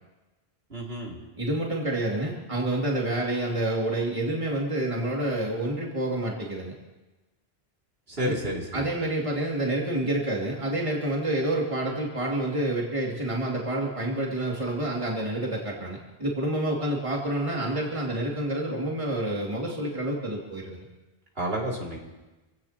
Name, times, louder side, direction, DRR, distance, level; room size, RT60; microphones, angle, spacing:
voice 1, 0.7-1.2 8.1-8.9 21.4-22.0, equal, 70° right, -4 dB, 3.2 m, -30 dB
voice 2, 1.4-6.7 8.2-8.4 8.7-20.8, right 1 dB, 30° right, -3 dB, 2.7 m, -28 dB
27.5 x 17.0 x 3.0 m, 1.1 s
omnidirectional pair, 1.1 m